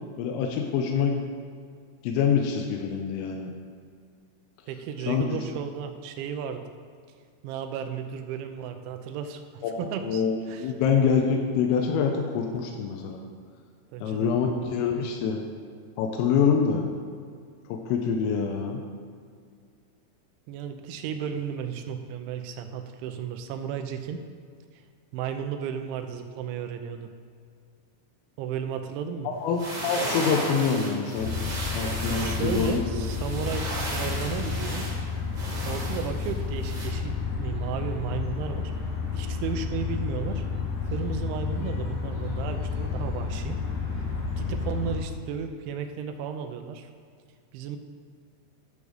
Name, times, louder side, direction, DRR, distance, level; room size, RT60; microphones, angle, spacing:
voice 1, 0.2-1.3 2.0-3.5 5.1-5.4 9.6-13.2 14.0-15.4 16.0-16.9 17.7-18.8 29.3-31.4 31.7-32.8, left 6 dB, 85° left, 2 dB, 3.4 m, -25 dB
voice 2, 4.7-6.7 7.4-9.4 9.8-10.2 10.5-10.7 13.9-14.3 20.5-24.2 25.1-27.1 28.4-29.3 32.0-34.8 35.6-38.7 39.1-40.4 40.9-43.6 44.4-46.9 47.5-47.8, right 7 dB, 80° right, 6 dB, 2.9 m, -34 dB
sound 1, 29.4-36.9, right 1 dB, 30° right, 2.7 m, -35 dB
sound 2, 31.1-45.0, left 5 dB, 50° left, 2.8 m, -31 dB
11.0 x 5.2 x 6.4 m, 2.1 s
omnidirectional pair, 5.8 m